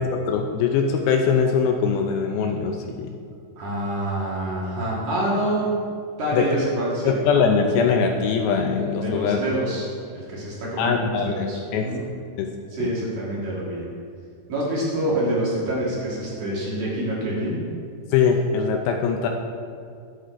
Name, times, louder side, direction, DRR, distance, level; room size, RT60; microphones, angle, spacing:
voice 1, 0.0-3.1 6.3-6.4 7.1-9.4 10.8-11.5 11.7-11.9 12.4-12.5 12.8-12.9 18.1-19.3, left 6 dB, 80° left, 3 dB, 2.3 m, -22 dB
voice 2, 3.6-5.8 6.2-7.2 9.0-12.0 12.7-13.9 14.5-17.6, right 1 dB, 60° right, -6 dB, 2.6 m, -26 dB
12.5 x 8.0 x 2.5 m, 2.2 s
omnidirectional pair, 4.6 m